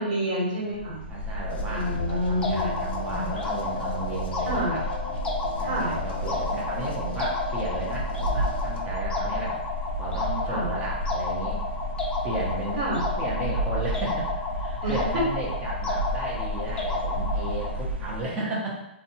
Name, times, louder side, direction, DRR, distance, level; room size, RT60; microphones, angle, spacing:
voice 1, 0.0-1.0 1.7-2.7 4.4-4.8 5.6-5.9 10.5-10.7 12.7-13.0 14.8-15.0, equal, 45° right, -6 dB, 1.3 m, -28 dB
sound 1, 0.7-18.2, equal, 80° right, 0.4 m, -32 dB
voice 2, 1.1-4.9 5.6-9.6 10.0-11.6 12.2-18.8, right 1 dB, 20° right, -4 dB, 0.7 m, -34 dB
sound 2, 1.5-8.8, left 3 dB, 55° left, 0.5 m, -39 dB
sound 3, 2.4-17.8, left 3 dB, 15° left, 0.5 m, -32 dB
2.7 x 2.2 x 2.7 m, 0.85 s
hypercardioid pair, 130°, 6 cm